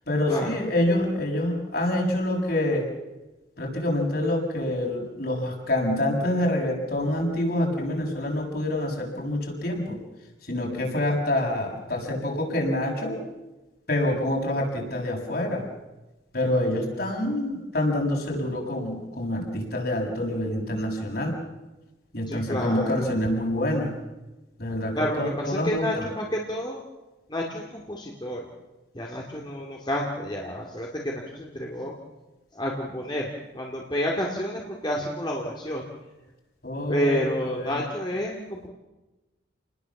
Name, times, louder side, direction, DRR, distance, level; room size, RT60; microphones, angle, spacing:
voice 1, 0.1-2.9 3.6-10.0 10.4-13.2 13.9-15.7 16.3-21.3 22.1-24.0 24.6-26.1 36.6-37.8, left 1 dB, 50° left, 0 dB, 6.9 m, -26 dB
voice 2, 22.3-23.1 24.9-26.8 27.3-28.4 28.9-31.9 32.5-35.8 36.9-38.7, equal, 25° left, -1 dB, 2.6 m, -30 dB
29.5 x 20.5 x 7.3 m, 1.1 s
head